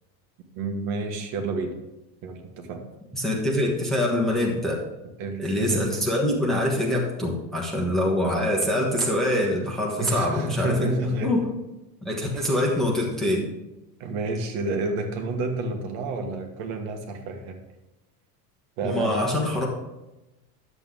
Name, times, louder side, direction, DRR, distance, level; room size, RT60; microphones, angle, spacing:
voice 1, 0.5-1.8 2.2-2.8 5.2-6.0 10.0-11.3 12.3-12.6 14.0-17.6 18.8-19.2, right 2 dB, 50° right, 4 dB, 1.5 m, -29 dB
voice 2, 3.1-4.8 5.4-11.4 12.0-13.5 18.8-19.7, left 1 dB, ahead, -3 dB, 1.2 m, -24 dB
11.0 x 7.9 x 3.8 m, 1.0 s
cardioid pair, 170°, 46 cm